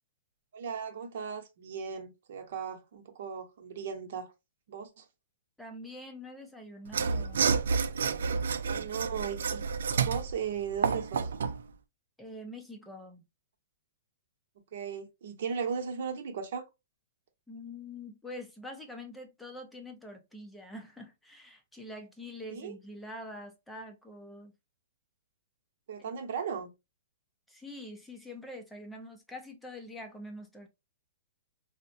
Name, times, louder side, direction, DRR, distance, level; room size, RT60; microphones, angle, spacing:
voice 1, 0.5-4.3 4.7-5.0 8.7-9.6 9.9-11.3 14.7-16.6 22.5-22.8 25.9-26.7, right 6 dB, 55° right, 0.9 m, -37 dB
voice 2, 5.6-7.5 12.2-13.2 17.5-24.5 27.5-30.7, left 1 dB, ahead, 0.6 m, -45 dB
Mechanisms / Sawing, 6.9-11.6, right 5 dB, 80° right, 0.4 m, -30 dB
3.9 x 2.1 x 2.6 m
hypercardioid pair, 160°, 0 cm